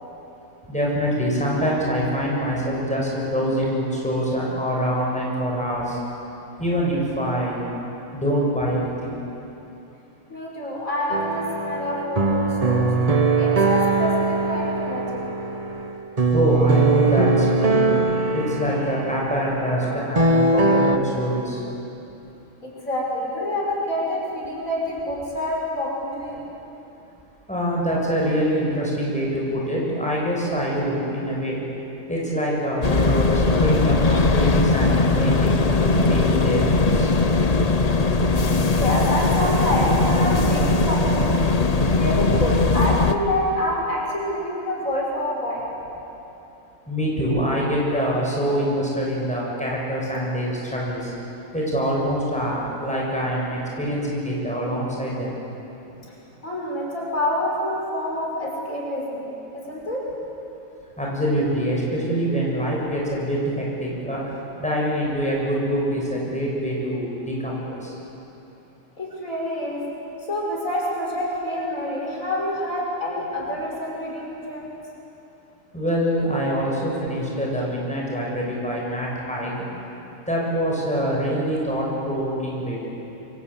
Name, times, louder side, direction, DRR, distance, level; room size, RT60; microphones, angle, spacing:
voice 1, 0.7-6.0 6.6-7.7 8.1-9.2 16.3-17.8 18.3-21.6 27.5-31.6 32.1-37.1 46.9-51.1 51.5-55.4 61.0-64.2 64.6-67.9 75.7-79.6 80.3-82.9, equal, 5° left, -4 dB, 6.7 m, -25 dB
voice 2, 10.3-12.9 13.4-15.2 22.6-26.4 38.7-41.4 41.9-45.6 56.4-59.3 59.5-60.0 69.0-69.8 70.3-74.7, left 1 dB, 75° left, -3 dB, 6.4 m, -27 dB
sound 1, 11.1-21.0, right 3 dB, 30° right, 1.3 m, -21 dB
sound 2, 32.8-43.1, left 3 dB, 30° left, 1.1 m, -19 dB
27.5 x 25.0 x 8.5 m, 3.0 s
omnidirectional pair, 1.4 m